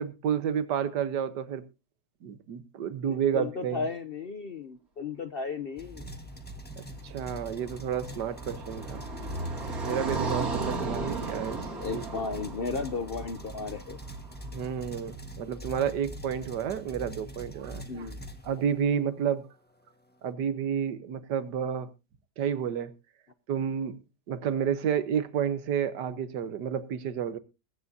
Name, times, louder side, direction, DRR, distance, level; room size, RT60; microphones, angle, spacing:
voice 1, 0.0-1.7 2.2-3.9 6.8-9.0 9.8-11.6 11.9-12.0 14.4-18.1 18.4-19.5 20.2-21.9 22.4-22.9 23.5-24.0 24.3-27.4, right 8 dB, 85° right, 1.6 m, -30 dB
voice 2, 3.1-6.1 10.2-10.3 11.0-11.3 11.8-14.0 17.9-18.2, left 4 dB, 55° left, 0.6 m, -35 dB
sound 1, 5.8-19.0, right 1 dB, 5° left, 1.2 m, -43 dB
Car passing by, 7.1-14.3, right 3 dB, 60° right, 3.0 m, -35 dB
22.0 x 9.6 x 2.7 m
omnidirectional pair, 1.8 m